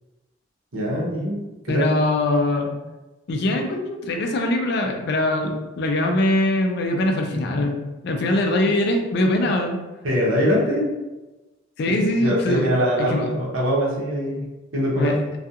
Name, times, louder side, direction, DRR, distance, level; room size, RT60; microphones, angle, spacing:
voice 1, 0.7-1.4 1.7-1.9 10.0-10.9 11.9-14.5 14.7-15.2, equal, 75° right, -4 dB, 0.8 m, -22 dB
voice 2, 1.7-2.8 3.3-9.8 11.8-12.7 13.0-13.3 15.0-15.2, left 1 dB, 55° left, 3 dB, 0.3 m, -22 dB
2.4 x 2.3 x 2.7 m, 1.1 s
head